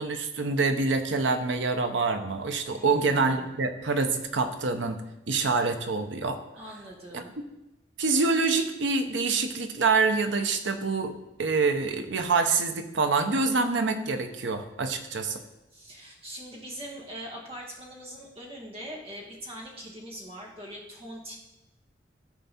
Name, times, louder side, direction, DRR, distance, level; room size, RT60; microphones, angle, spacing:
voice 1, 0.0-5.0 5.3-6.4 7.1-7.2 8.0-11.1 11.4-15.4, right 4 dB, 85° right, 7 dB, 0.8 m, -26 dB
voice 2, 2.7-3.5 6.6-7.3 15.7-21.4, equal, 30° right, -1 dB, 1.8 m, -42 dB
13.0 x 4.6 x 4.3 m, 0.95 s
head